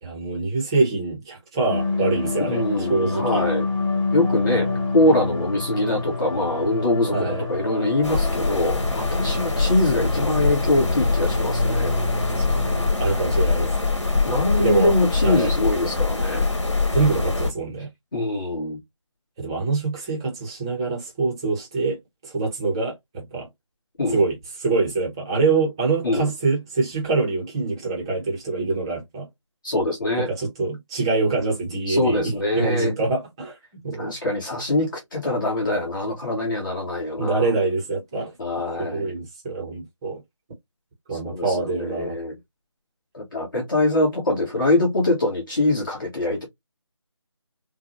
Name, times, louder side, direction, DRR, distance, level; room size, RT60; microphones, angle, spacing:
voice 1, 0.0-3.4 4.6-4.8 7.1-7.5 10.0-10.1 12.4-12.7 13.0-13.9 14.6-14.9 15.2-15.5 16.9-17.9 19.4-22.0 22.2-23.5 24.1-29.3 30.2-33.6 33.8-34.1 37.2-38.3 38.8-40.2 41.1-42.2, right 3 dB, 10° right, 0.8 m, -25 dB
sound 1, 1.7-12.9, left 2 dB, 15° left, 2.0 m, -28 dB
voice 2, 2.4-3.7 4.1-4.7 4.9-11.9 14.2-16.5 18.1-18.8 24.0-24.2 26.0-26.3 29.6-30.3 31.9-32.9 34.0-37.5 38.4-39.1 41.3-42.4 43.1-46.4, left 2 dB, 40° left, 1.8 m, -23 dB
sound 2, 8.0-17.5, left 3 dB, 65° left, 1.7 m, -23 dB
5.8 x 2.3 x 2.9 m
figure-of-eight pair, 160°, 16 cm